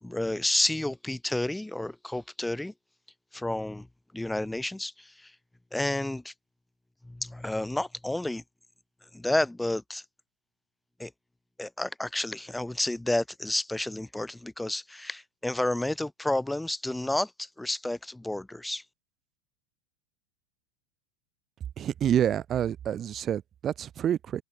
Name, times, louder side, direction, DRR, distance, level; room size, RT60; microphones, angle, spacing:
voice 1, 0.0-2.7 3.3-3.9 4.1-5.3 5.7-6.3 7.0-8.4 9.1-10.0 11.0-11.1 11.6-18.8, left 1 dB, 5° left, 5.3 m, -30 dB
voice 2, 21.8-24.4, right 10 dB, 35° right, 4.6 m, -28 dB
figure-of-eight pair, 85°, 0 cm